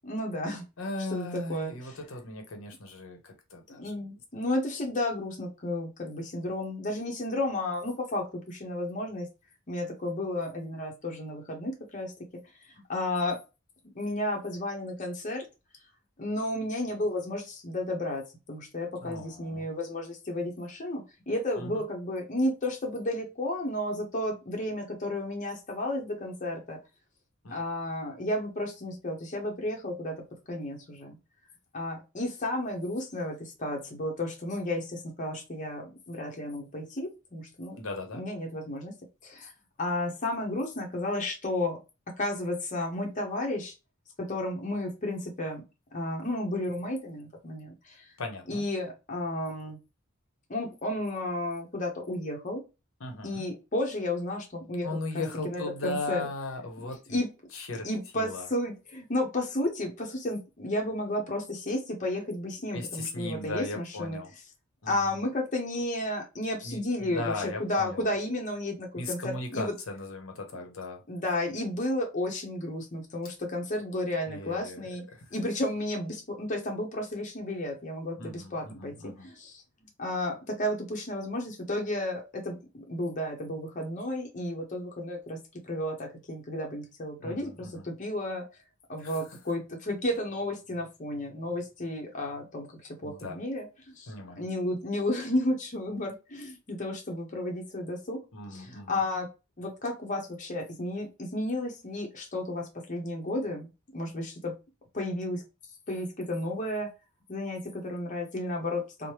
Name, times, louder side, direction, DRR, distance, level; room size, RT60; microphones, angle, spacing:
voice 1, 0.0-0.6 1.1-2.0 3.7-9.3 9.7-12.1 12.9-13.4 14.0-15.4 16.2-26.8 27.5-30.1 30.5-31.2 31.7-37.8 38.1-38.9 39.2-39.5 39.8-41.8 42.1-43.7 44.2-45.6 45.9-48.1 48.5-49.8 50.5-52.6 53.2-56.2 57.1-57.3 57.8-64.2 64.9-69.7 71.1-75.0 75.3-79.6 80.0-85.4 85.6-88.5 88.9-98.2 98.5-99.3 99.6-104.5 104.9-105.4 105.9-106.9 107.3-109.1, left 1 dB, 40° left, 1 dB, 0.7 m, -32 dB
voice 2, 0.8-4.1 19.0-19.7 21.6-21.8 27.4-27.6 37.8-38.2 48.2-48.6 53.0-53.4 54.8-57.2 57.5-57.9 58.1-58.5 62.7-64.3 64.8-65.2 66.6-68.1 68.9-71.0 74.3-75.3 78.2-79.3 87.2-87.9 89.0-89.2 93.0-93.4 94.1-94.4 98.3-99.0, left 2 dB, 70° left, 3 dB, 0.8 m, -37 dB
3.2 x 2.0 x 2.9 m, 0.27 s
head